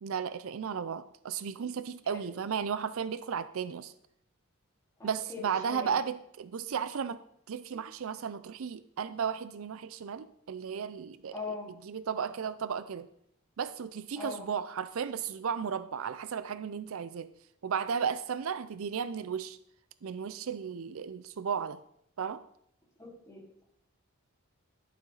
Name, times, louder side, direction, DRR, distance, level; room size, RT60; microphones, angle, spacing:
voice 1, 0.0-3.9 5.0-11.4 11.8-13.1 13.6-17.3 17.6-19.6 20.0-21.8 22.2-22.4, right 7 dB, 75° right, 13 dB, 0.5 m, -34 dB
voice 2, 5.0-5.9 11.3-11.7 14.1-14.5 23.0-23.6, left 3 dB, 15° left, -7 dB, 3.9 m, -41 dB
12.0 x 6.9 x 3.9 m, 0.73 s
head